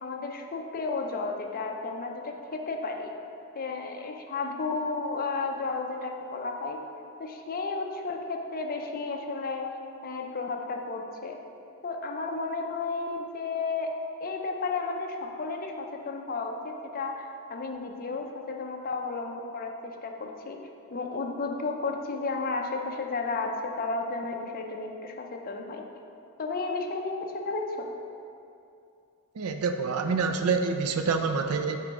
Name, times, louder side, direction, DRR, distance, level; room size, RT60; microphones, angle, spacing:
voice 1, 0.0-3.1 3.5-6.8 7.2-9.7 10.0-11.4 11.8-20.6 20.9-25.9 26.4-27.9, left 3 dB, 40° left, 2 dB, 0.6 m, -33 dB
voice 2, 29.4-31.8, right 4 dB, 75° right, 6 dB, 0.4 m, -27 dB
6.1 x 4.5 x 5.2 m, 2.6 s
head